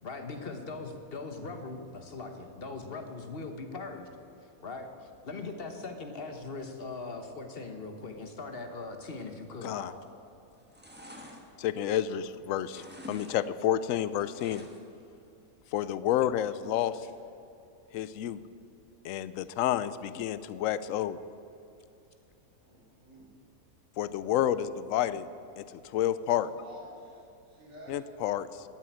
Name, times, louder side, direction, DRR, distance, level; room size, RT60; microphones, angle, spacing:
voice 1, 0.0-4.1 4.6-9.9 17.0-17.1, left 3 dB, 40° left, 6 dB, 1.3 m, -40 dB
voice 2, 9.6-9.9 11.6-14.7 15.7-17.0 17.9-18.4 19.0-21.2 24.0-25.3 25.6-26.5 27.9-28.6, left 11 dB, 70° left, 15 dB, 0.9 m, -30 dB
sound 1, 9.9-10.2 10.5-12.3 12.6-13.3 13.6-15.0 15.4-15.5, equal, 5° right, 1.3 m, -48 dB
voice 3, 22.6-23.3 26.3-28.0, right 1 dB, 50° right, -3 dB, 3.6 m, -51 dB
13.0 x 7.7 x 9.3 m, 2.7 s
omnidirectional pair, 1.6 m